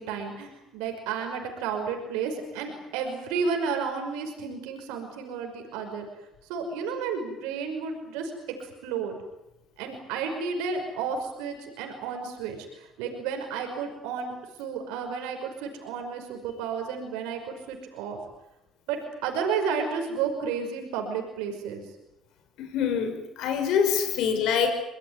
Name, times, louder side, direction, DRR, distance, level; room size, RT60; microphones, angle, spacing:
voice 1, 0.0-6.1 6.5-8.3 8.6-9.2 9.8-14.3 14.6-18.2 18.9-21.9 24.1-24.2, right 5 dB, 85° right, 4 dB, 5.4 m, -32 dB
voice 2, 22.6-24.7, left 7 dB, 75° left, 7 dB, 6.0 m, -25 dB
25.0 x 21.5 x 9.7 m, 0.90 s
supercardioid pair, 75°, 0 cm